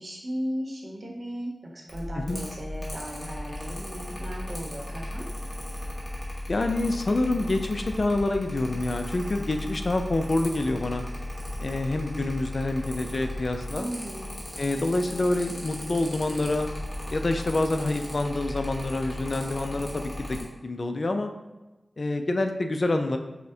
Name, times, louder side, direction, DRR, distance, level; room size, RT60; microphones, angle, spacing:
voice 1, 0.0-5.2 13.8-14.3, equal, 50° right, -2 dB, 0.8 m, -36 dB
Mechanical fan, 1.9-20.4, left 1 dB, 25° left, 1.0 m, -36 dB
voice 2, 6.5-11.0 11.6-13.9 14.6-16.7 17.1-21.3 22.0-23.2, left 2 dB, 50° left, 6 dB, 0.3 m, -27 dB
5.6 x 2.1 x 2.7 m, 1.1 s
wide cardioid pair, 95°, 0 cm